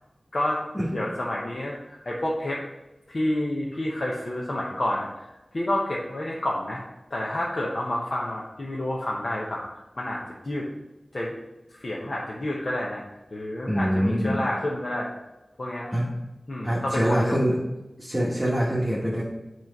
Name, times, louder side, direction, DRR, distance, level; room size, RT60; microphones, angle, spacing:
voice 1, 0.3-0.6 0.9-2.6 3.1-5.1 5.5-6.8 7.1-9.7 10.0-10.7 11.1-11.3 11.8-13.0 13.3-15.1 15.6-16.0 16.5-17.4, left 1 dB, 55° left, -4 dB, 0.9 m, -29 dB
voice 2, 13.7-14.4 15.9-16.1 16.6-17.5 18.0-19.2, equal, 15° right, -5 dB, 1.2 m, -24 dB
7.3 x 3.1 x 5.3 m, 1.0 s
wide cardioid pair, 65°, 0 cm